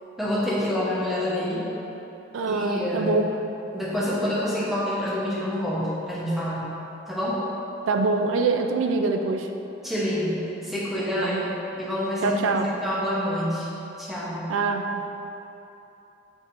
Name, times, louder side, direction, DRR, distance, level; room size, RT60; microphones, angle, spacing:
voice 1, 0.2-1.6 2.5-3.1 3.7-6.7 7.1-7.4 9.8-11.5 11.8-13.7 14.0-14.4, left 1 dB, ahead, -8 dB, 0.8 m, -27 dB
voice 2, 2.3-3.3 7.9-9.5 11.2-11.5 12.2-12.7 14.5-15.1, right 3 dB, 90° right, 4 dB, 0.3 m, -24 dB
4.6 x 4.2 x 2.5 m, 3.0 s
head